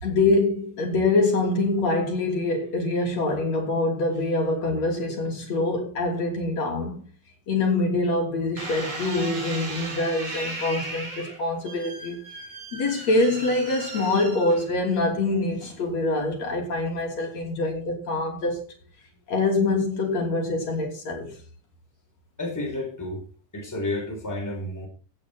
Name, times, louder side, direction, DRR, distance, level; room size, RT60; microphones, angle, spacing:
voice 1, 0.0-7.1 7.5-12.2 12.7-18.6 19.3-21.4, left 2 dB, 60° left, 4.2 m, -25 dB
sound 1, 8.6-15.0 15.6-16.1, right 2 dB, 85° right, 6.6 m, -36 dB
voice 2, 22.4-23.2 23.5-24.9, left 1 dB, 5° left, 3.9 m, -31 dB
15.5 x 9.0 x 4.4 m
omnidirectional pair, 3.4 m